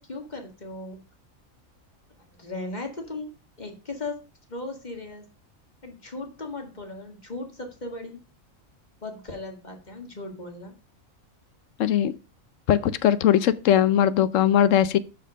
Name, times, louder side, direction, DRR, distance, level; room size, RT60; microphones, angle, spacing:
voice 1, 0.1-1.0 2.1-4.2 4.5-5.2 5.8-8.2 9.0-10.7, left 2 dB, 30° left, 2.0 m, -37 dB
voice 2, 11.8-12.1 12.7-15.0, left 10 dB, 70° left, 1.0 m, -20 dB
6.9 x 6.1 x 5.2 m
omnidirectional pair, 1.4 m